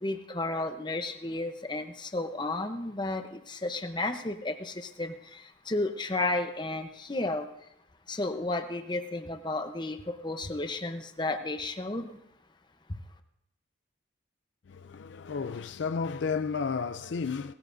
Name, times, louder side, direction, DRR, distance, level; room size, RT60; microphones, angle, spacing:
voice 1, 0.0-5.1 5.7-7.5 8.1-10.0 10.2-12.1, left 2 dB, 20° left, 0.8 m, -32 dB
voice 2, 14.7-17.5, left 5 dB, 65° left, 0.4 m, -32 dB
18.5 x 15.0 x 2.6 m
head